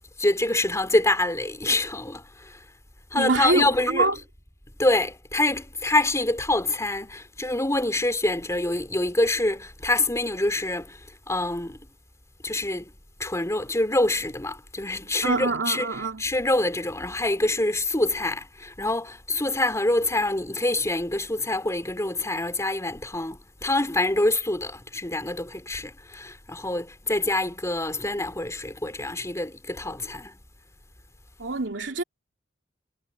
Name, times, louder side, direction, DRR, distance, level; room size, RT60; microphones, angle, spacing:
voice 1, 0.2-2.6 3.1-4.1 4.8-11.8 12.4-12.9 13.2-15.9 16.2-30.4, left 2 dB, 15° left, 4.0 m, -26 dB
voice 2, 3.1-4.2 15.2-16.2 31.4-32.0, right 3 dB, 75° right, 2.8 m, -25 dB
head